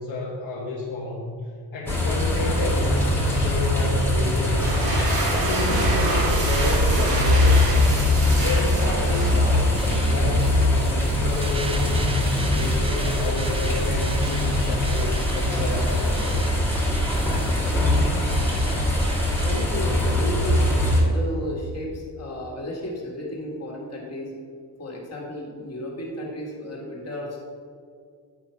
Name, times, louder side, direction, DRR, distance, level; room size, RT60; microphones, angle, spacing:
voice 1, 0.0-1.3 1.7-4.9 5.3-7.9 8.4-9.7 10.1-11.9 12.2-16.5, left 3 dB, 55° left, -5 dB, 1.3 m, -30 dB
sound 1, 1.9-21.0, left 1 dB, 5° left, 1.5 m, -22 dB
sound 2, 4.4-10.0, right 2 dB, 85° right, 2.4 m, -28 dB
sound 3, 9.4-19.6, right 3 dB, 15° right, 0.4 m, -38 dB
voice 2, 19.4-24.3 24.8-27.4, left 1 dB, 35° left, -2 dB, 2.1 m, -33 dB
10.5 x 5.0 x 5.8 m, 2.2 s
wide cardioid pair, 180°, 41 cm